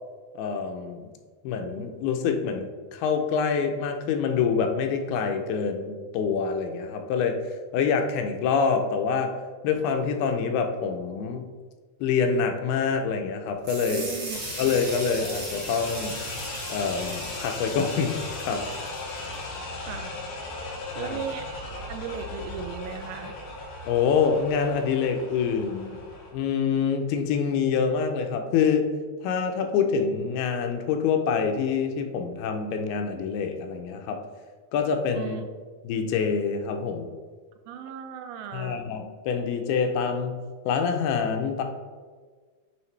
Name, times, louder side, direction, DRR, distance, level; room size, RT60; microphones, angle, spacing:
voice 1, 0.4-1.1 1.4-7.4 7.7-9.3 9.6-11.4 12.0-14.1 14.6-16.2 16.7-18.1 18.4-18.7 21.0-21.2 23.9-26.0 26.3-28.8 29.2-34.2 34.7-35.4 35.8-37.1 38.5-40.4 40.7-41.6, left 6 dB, 85° left, 5 dB, 2.6 m, -26 dB
sound 1, 13.6-19.4, right 2 dB, 45° right, 1.6 m, -39 dB
voice 2, 13.9-14.4 19.9-20.1 21.0-21.5 21.9-23.4 35.1-35.4 37.7-38.8, right 7 dB, 85° right, 7 dB, 2.4 m, -36 dB
sound 2, 14.3-26.3, left 2 dB, 65° left, 2.3 m, -37 dB
8.5 x 3.9 x 3.2 m, 1.5 s
omnidirectional pair, 4.5 m